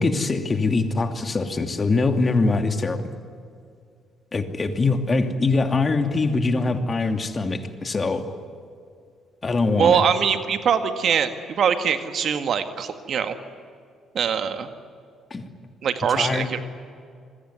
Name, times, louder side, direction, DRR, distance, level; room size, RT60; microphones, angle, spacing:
voice 1, 0.0-3.0 4.3-8.2 9.4-10.0 15.3-15.4 16.2-16.5, left 3 dB, 35° left, 6 dB, 2.7 m, -23 dB
voice 2, 9.8-13.4 14.1-14.7 15.8-16.6, right 7 dB, 55° right, 8 dB, 1.9 m, -22 dB
27.0 x 21.5 x 9.6 m, 2.3 s
hypercardioid pair, 50°, 0 cm